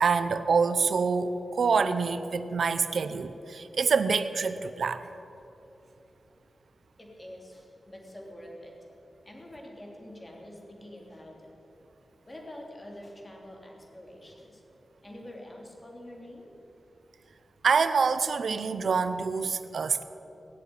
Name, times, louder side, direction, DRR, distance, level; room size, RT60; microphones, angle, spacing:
voice 1, 0.0-5.1 17.6-20.0, right 5 dB, 75° right, 11 dB, 0.7 m, -26 dB
voice 2, 7.0-8.7 9.2-11.5 12.3-14.6 15.0-16.5, left 1 dB, 20° left, -1 dB, 3.3 m, -46 dB
19.5 x 7.7 x 9.7 m, 3.0 s
wide cardioid pair, 85°, 0 cm